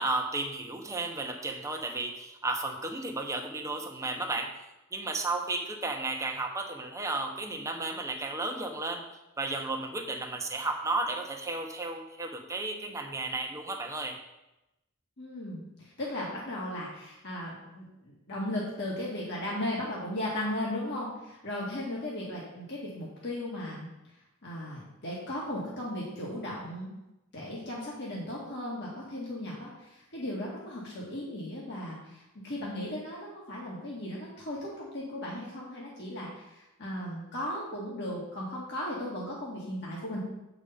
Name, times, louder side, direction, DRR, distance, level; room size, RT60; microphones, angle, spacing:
voice 1, 0.0-4.5 4.9-9.0 9.4-14.2, right 2 dB, 15° right, 2 dB, 0.9 m, -33 dB
voice 2, 15.2-23.9 24.4-26.9 27.3-40.2, left 1 dB, 55° left, -5 dB, 1.7 m, -36 dB
8.1 x 5.0 x 5.6 m, 0.95 s
head